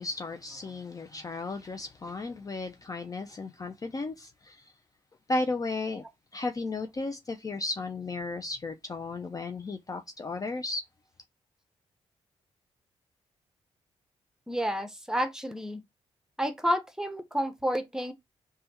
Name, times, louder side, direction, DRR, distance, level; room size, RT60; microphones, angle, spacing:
voice 1, 0.0-4.7 5.3-6.0 6.3-10.8, left 3 dB, 30° left, 0.4 m, -34 dB
voice 2, 14.5-15.8 16.4-18.1, equal, 5° right, 0.8 m, -30 dB
3.3 x 2.2 x 2.9 m
cardioid pair, 60°, 12 cm